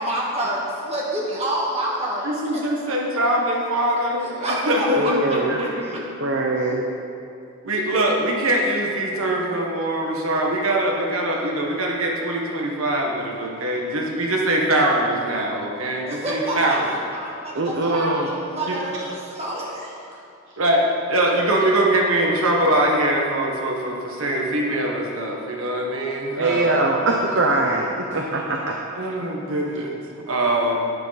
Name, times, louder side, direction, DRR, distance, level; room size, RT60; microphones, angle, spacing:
voice 1, 0.0-2.3 2.5-2.6 4.2-6.0 16.1-16.8 17.1-19.9, right 1 dB, 30° right, -4 dB, 2.0 m, -28 dB
voice 2, 2.2-5.9 7.6-16.8 18.7-18.8 20.6-26.9 28.9-30.8, right 1 dB, 75° right, -1 dB, 1.4 m, -23 dB
voice 3, 5.0-5.6 5.9-6.9 17.5-18.3 26.4-28.7, right 2 dB, 55° right, 0 dB, 0.8 m, -22 dB
11.5 x 10.0 x 4.2 m, 2.6 s
head